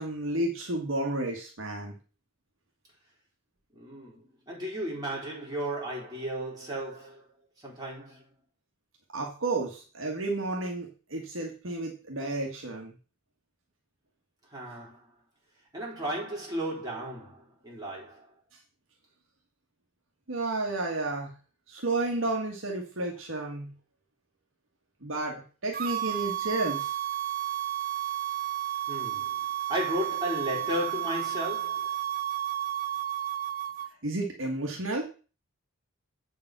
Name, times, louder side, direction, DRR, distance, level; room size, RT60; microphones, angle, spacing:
voice 1, 0.0-1.9 9.1-12.9 20.3-21.3 21.7-23.7 25.0-26.9 34.0-35.1, right 2 dB, 65° right, 1.7 m, -31 dB
voice 2, 3.7-7.2 7.6-8.2 14.5-15.0 15.7-18.3 28.9-29.4 29.7-31.9, equal, 20° right, 4.2 m, -34 dB
sound 1, 25.7-33.9, right 12 dB, 40° right, 0.5 m, -32 dB
8.0 x 5.4 x 6.1 m
head